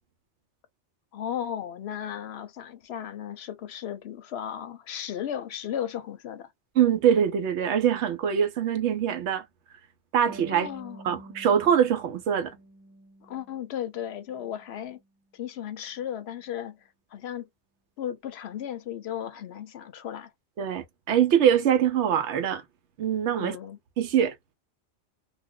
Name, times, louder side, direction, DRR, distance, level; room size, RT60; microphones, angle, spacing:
voice 1, 1.1-6.5 10.5-11.0 13.2-15.0 15.3-16.8 17.1-17.5 18.0-20.3 23.4-23.8, left 10 dB, 65° left, 0.8 m, -35 dB
voice 2, 6.8-9.4 10.1-10.7 11.0-12.6 20.6-22.6 23.0-23.6 24.0-24.3, right 9 dB, 75° right, 0.9 m, -23 dB
Harp, 10.3-13.7 14.0-15.1, right 2 dB, 5° right, 0.4 m, -49 dB
2.4 x 2.1 x 3.6 m
omnidirectional pair, 1.2 m